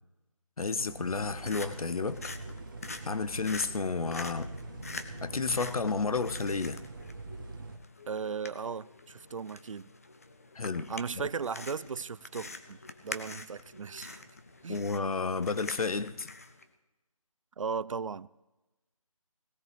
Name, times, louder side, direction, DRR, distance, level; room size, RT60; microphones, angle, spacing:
voice 1, 0.6-2.3 3.1-4.5 5.2-6.8 10.5-11.2 14.7-16.3, left 4 dB, 85° left, 0.8 m, -31 dB
sound 1, 0.8-7.8, right 3 dB, 35° right, 1.0 m, -44 dB
sound 2, 1.0-16.6, left 3 dB, 25° left, 0.6 m, -46 dB
voice 2, 8.1-9.9 10.9-14.2 14.6-14.8 17.6-18.3, right 5 dB, 65° right, 0.4 m, -37 dB
18.5 x 17.0 x 3.4 m
figure-of-eight pair, 175°, 18 cm